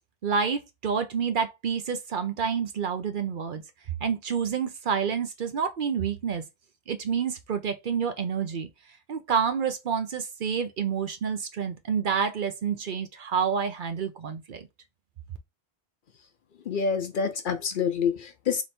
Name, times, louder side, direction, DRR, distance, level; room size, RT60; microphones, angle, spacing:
voice 1, 0.2-3.6 4.0-6.4 6.9-8.7 9.1-14.6, right 6 dB, 55° right, 0.7 m, -28 dB
voice 2, 16.7-18.6, left 6 dB, 60° left, 0.6 m, -27 dB
3.3 x 3.0 x 4.1 m
omnidirectional pair, 1.1 m